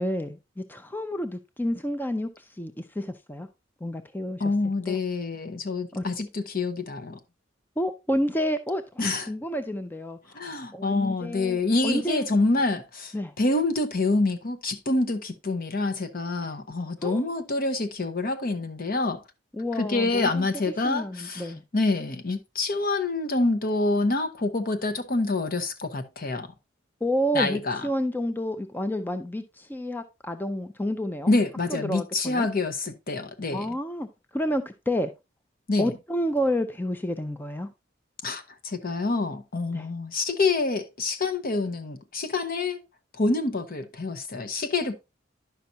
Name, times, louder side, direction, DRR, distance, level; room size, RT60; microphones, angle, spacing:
voice 1, 0.0-3.5 3.8-4.5 4.9-5.0 5.9-6.0 7.8-10.2 10.7-12.3 13.1-13.3 16.4-16.5 17.0-17.3 19.5-20.5 20.8-21.6 27.0-31.3 31.7-32.5 33.5-34.1 34.3-35.1 35.8-37.7 39.7-39.9, equal, 10° left, 0.5 m, -29 dB
voice 2, 4.4-7.2 9.0-9.3 10.3-19.2 19.8-26.5 27.3-27.8 31.3-33.7 35.7-35.9 38.2-42.8 43.2-45.0, left 3 dB, 50° left, 0.9 m, -27 dB
10.5 x 5.8 x 2.6 m
head